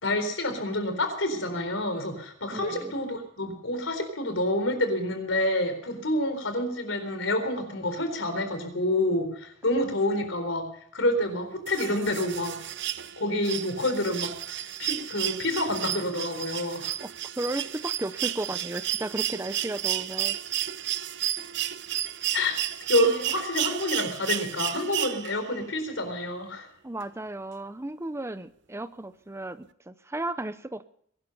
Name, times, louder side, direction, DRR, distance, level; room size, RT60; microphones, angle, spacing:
voice 1, 0.0-10.7 10.9-12.6 13.2-14.3 14.8-16.9 22.3-22.6 22.9-26.7, left 1 dB, 80° left, 7 dB, 4.0 m, -28 dB
voice 2, 2.5-2.9 17.0-17.1 17.4-20.4 26.8-30.8, right 1 dB, 15° right, 13 dB, 0.6 m, -34 dB
sound 1, 11.7-25.6 27.0-27.1, right 12 dB, 65° right, 0.7 m, -32 dB
22.0 x 12.0 x 5.4 m, 0.64 s
head